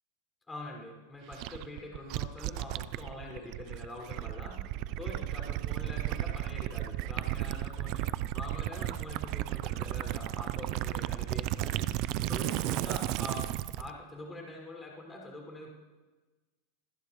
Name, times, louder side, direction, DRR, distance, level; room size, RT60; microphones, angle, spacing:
voice 1, 0.5-4.6 5.0-11.9 12.3-13.5 13.8-15.7, left 2 dB, 15° left, -1 dB, 6.1 m, -44 dB
Gurgling / Liquid, 1.3-13.9, right 14 dB, 55° right, 0.6 m, -34 dB
27.0 x 14.5 x 3.3 m, 1.2 s
hypercardioid pair, 110°, 0 cm